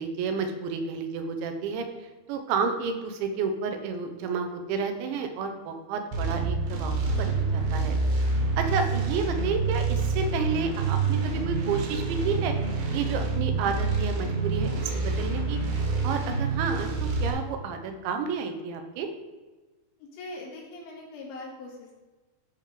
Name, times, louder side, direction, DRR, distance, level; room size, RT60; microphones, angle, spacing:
voice 1, 0.0-1.8 2.3-8.0 8.6-12.5 12.9-15.6 16.0-16.9 17.2-19.1, right 5 dB, 85° right, 6 dB, 3.3 m, -30 dB
sound 1, 6.1-17.3, right 3 dB, 65° right, 3.2 m, -27 dB
voice 2, 20.0-21.9, left 2 dB, 75° left, -4 dB, 4.3 m, -41 dB
13.5 x 4.9 x 3.8 m, 1.2 s
omnidirectional pair, 5.1 m